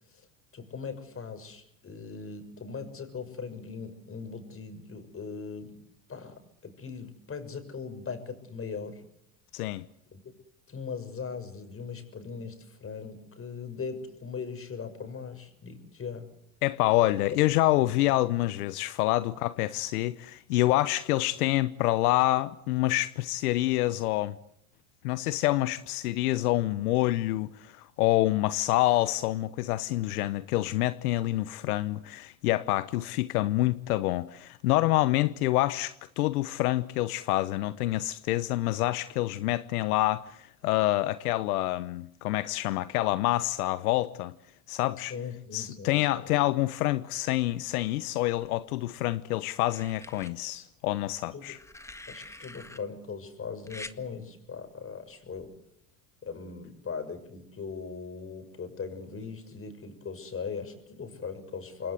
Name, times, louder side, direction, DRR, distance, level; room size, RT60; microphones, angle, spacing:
voice 1, 0.5-5.8 6.1-9.0 10.1-10.2 10.7-16.3 45.1-46.3 51.3-51.5 52.1-55.5 56.2-61.9, left 5 dB, 30° left, 6.7 m, -39 dB
voice 2, 9.5-9.8 16.6-24.4 25.0-40.4 40.6-44.3 44.7-45.1 45.5-51.6, left 17 dB, 85° left, 1.0 m, -27 dB
sound 1, 48.4-49.1 49.6-50.3 51.5-52.8 53.7-54.0 55.3-55.6, left 2 dB, 5° left, 1.6 m, -46 dB
27.5 x 21.5 x 8.2 m
supercardioid pair, 90°, 44 cm